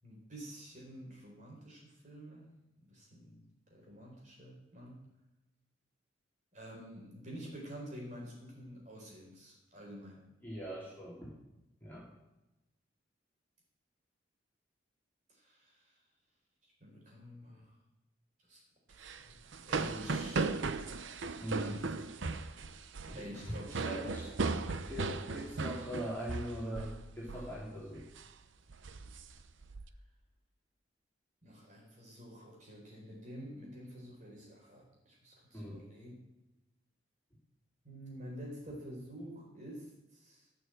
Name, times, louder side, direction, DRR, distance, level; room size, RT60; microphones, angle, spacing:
voice 1, 0.0-2.5 2.8-3.4 3.7-5.1 6.5-10.3 15.4-15.8 16.6-17.7 18.5-18.6 18.9-19.3 19.6-20.4 21.5-21.9 23.1-24.2 31.4-36.1 37.8-40.4, equal, 40° right, -2 dB, 4.2 m, -49 dB
voice 2, 10.4-11.3 11.8-12.1 21.4-21.7 23.1-24.3 24.9-28.1 35.5-35.8, equal, 10° left, -5 dB, 3.2 m, -41 dB
sound 1, 18.9-27.0 27.3-27.6 27.9-28.3 28.7-29.8, right 3 dB, 75° right, 0.7 m, -37 dB
14.5 x 6.5 x 7.7 m, 0.96 s
head